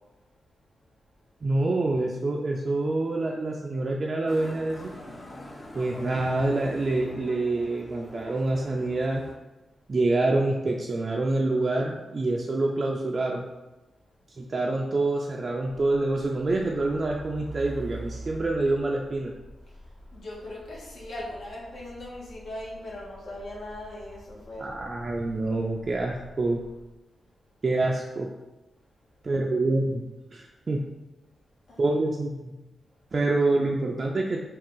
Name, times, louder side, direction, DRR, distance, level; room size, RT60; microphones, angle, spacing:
voice 1, 1.4-4.9 5.7-9.2 9.9-13.5 14.4-19.3 24.6-26.6 27.6-28.3 29.2-30.1 30.3-30.8 31.8-32.5 33.1-34.4, right 2 dB, 40° right, -1 dB, 0.3 m, -26 dB
Motorcycle, 4.3-9.3, left 1 dB, 25° left, 0.5 m, -44 dB
Truck, 15.8-26.9, right 1 dB, 40° left, 1.4 m, -46 dB
voice 2, 20.1-24.7 31.7-31.9, left 1 dB, 70° left, -4 dB, 1.1 m, -39 dB
3.5 x 2.4 x 3.8 m, 1.1 s
wide cardioid pair, 110°, 0 cm